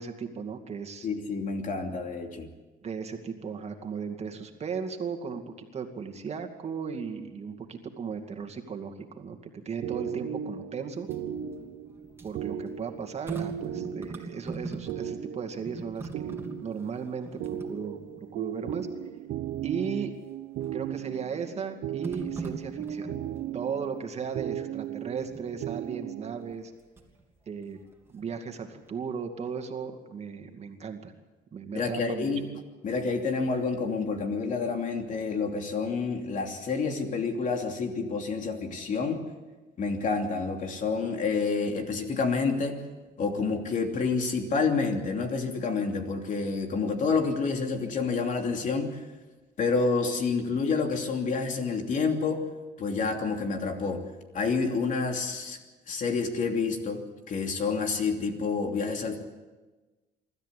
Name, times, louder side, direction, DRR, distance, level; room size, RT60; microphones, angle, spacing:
voice 1, 0.0-1.1 2.8-11.1 12.2-16.3 16.6-18.9 19.6-20.1 20.7-23.2 23.5-26.7 27.5-27.8 28.1-31.1 31.5-32.3, right 6 dB, 40° right, 5 dB, 2.4 m, -36 dB
voice 2, 1.0-2.5 31.7-32.5 32.8-39.2 39.8-42.9 43.2-49.0 49.6-52.4 52.8-54.0 54.3-55.6 55.9-59.2, left 4 dB, 50° left, 4 dB, 3.0 m, -28 dB
sound 1, 9.8-26.6, right 10 dB, 75° right, 0.9 m, -37 dB
sound 2, 10.9-15.3 15.5-18.3 18.9-19.0 20.6-21.1 22.0-23.5 25.2-25.6 26.5-27.2 27.6-28.6 28.9-29.0, right 3 dB, 15° right, 3.2 m, -42 dB
25.0 x 13.5 x 8.5 m, 1.2 s
cardioid pair, 110°, 17 cm